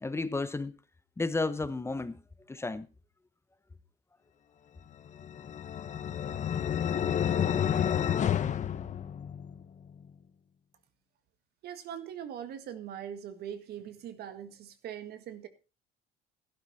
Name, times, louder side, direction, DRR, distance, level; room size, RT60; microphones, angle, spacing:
voice 1, 0.0-0.7 1.2-2.2 2.5-2.9, left 3 dB, 15° left, 0.9 m, -32 dB
sound 1, 5.1-9.6, left 9 dB, 45° left, 1.1 m, -30 dB
voice 2, 11.6-15.5, right 9 dB, 70° right, 1.8 m, -41 dB
12.5 x 11.5 x 4.1 m
cardioid pair, 110°, 17 cm